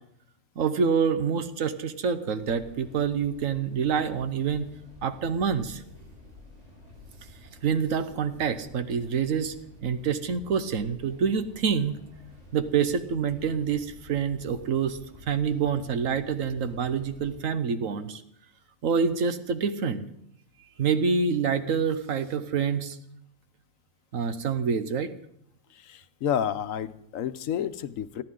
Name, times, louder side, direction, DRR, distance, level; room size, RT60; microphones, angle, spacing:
voice 1, 0.6-4.7 5.0-5.8 7.6-9.5 9.8-12.0 12.5-15.0 15.3-18.2 18.8-20.1 20.8-23.0 24.1-25.1, right 6 dB, 80° right, 11 dB, 1.4 m, -27 dB
sound 1, 2.4-17.4, left 1 dB, 30° right, 7.1 m, -51 dB
voice 2, 25.7-28.2, left 9 dB, 85° left, 12 dB, 1.1 m, -30 dB
29.5 x 10.5 x 3.8 m, 0.74 s
omnidirectional pair, 1.4 m